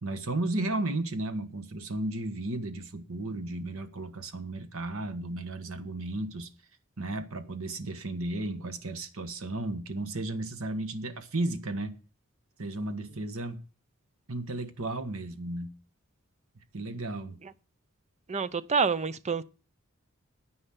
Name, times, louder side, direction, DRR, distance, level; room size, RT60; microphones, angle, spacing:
voice 1, 0.0-6.5 7.0-12.0 12.6-13.6 14.3-15.7 16.7-17.4, right 2 dB, 70° right, 1.4 m, -34 dB
voice 2, 18.3-19.4, right 5 dB, 30° right, 0.6 m, -27 dB
9.9 x 9.4 x 5.8 m
head